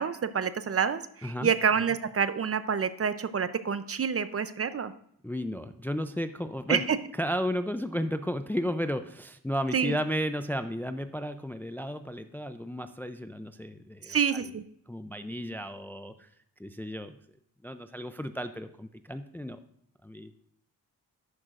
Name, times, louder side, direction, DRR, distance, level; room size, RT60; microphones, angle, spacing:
voice 1, 0.0-4.9 6.7-7.0 9.7-9.9 14.1-14.6, right 6 dB, 40° right, 13 dB, 0.6 m, -28 dB
voice 2, 5.2-6.8 7.2-14.4 14.9-16.3 16.6-17.2 17.6-19.6 20.0-20.3, equal, 5° left, 10 dB, 0.4 m, -33 dB
11.5 x 8.6 x 2.5 m, 0.69 s
cardioid pair, 90°, 37 cm